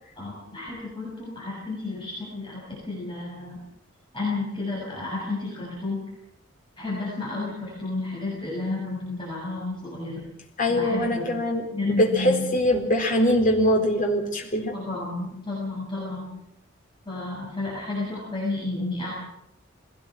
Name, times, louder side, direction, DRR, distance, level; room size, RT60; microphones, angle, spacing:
voice 1, 0.2-3.6 4.1-6.0 6.8-10.2 10.7-11.2 11.7-12.4 14.7-16.3 17.1-19.1, left 2 dB, 20° left, -6 dB, 6.9 m, -31 dB
voice 2, 10.6-14.8, left 1 dB, 40° left, 1 dB, 4.1 m, -23 dB
21.5 x 18.0 x 7.8 m, 0.79 s
head